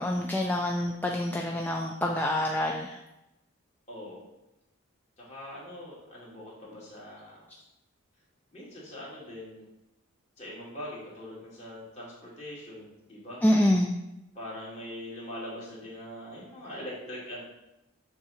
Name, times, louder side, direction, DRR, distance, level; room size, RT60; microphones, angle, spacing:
voice 1, 0.0-3.0 13.4-14.0, left 1 dB, 10° left, 0 dB, 0.4 m, -26 dB
voice 2, 3.9-4.2 5.2-7.5 8.5-9.6 10.4-13.4 14.3-17.4, left 1 dB, 30° left, -6 dB, 2.4 m, -42 dB
7.2 x 3.8 x 5.7 m, 0.91 s
head